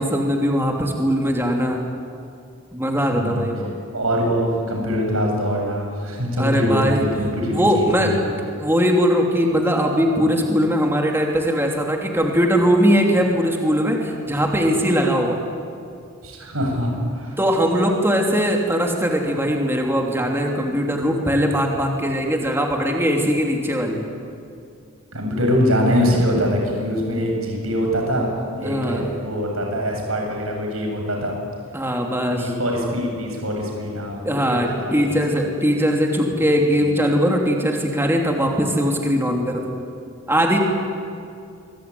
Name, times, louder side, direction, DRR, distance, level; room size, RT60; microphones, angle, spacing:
voice 1, 0.0-1.9 2.7-3.7 6.4-7.1 7.5-8.1 8.6-15.4 17.4-24.1 28.6-29.1 31.7-32.5 34.2-39.7 40.3-40.6, equal, 10° right, 1 dB, 3.0 m, -20 dB
voice 2, 3.1-3.5 3.9-8.2 16.2-17.4 25.1-31.4 32.3-34.9 36.8-36.9, equal, 80° right, 1 dB, 8.0 m, -23 dB
25.5 x 22.5 x 9.7 m, 2.4 s
head